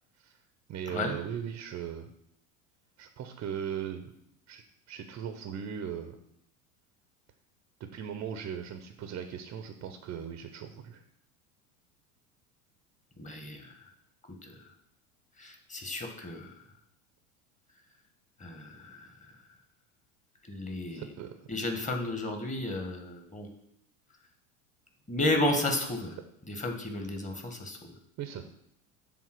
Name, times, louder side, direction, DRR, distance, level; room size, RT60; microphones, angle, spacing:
voice 1, 0.7-2.1 3.0-4.1 4.5-6.2 7.9-11.0 20.9-21.5 28.2-28.4, right 8 dB, 35° right, 7 dB, 0.8 m, -38 dB
voice 2, 13.2-13.7 14.4-14.5 15.4-16.5 18.4-19.1 20.5-21.1 21.5-23.5 25.1-26.1 26.5-27.8, left 1 dB, 15° left, 4 dB, 1.6 m, -32 dB
7.3 x 3.7 x 6.2 m, 0.74 s
hypercardioid pair, 85°, 44 cm